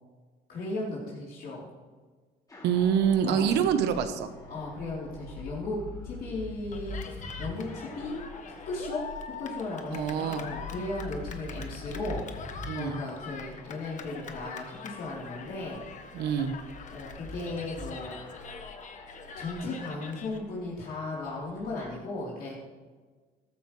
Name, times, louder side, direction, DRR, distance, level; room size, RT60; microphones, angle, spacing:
voice 1, 0.5-1.7 3.2-3.6 4.5-8.2 8.7-9.1 9.4-12.2 12.7-15.8 16.9-18.2 19.4-22.5, left 2 dB, 60° left, -6 dB, 3.8 m, -36 dB
sound 1, 2.5-21.9, left 1 dB, 20° left, 4.3 m, -45 dB
voice 2, 2.6-4.3 9.9-10.4 12.7-13.0 16.1-16.5, right 8 dB, 80° right, 9 dB, 1.1 m, -26 dB
Cheering, 6.7-20.4, left 6 dB, 45° left, 1.4 m, -44 dB
14.0 x 13.0 x 3.3 m, 1.4 s
cardioid pair, 110°, 17 cm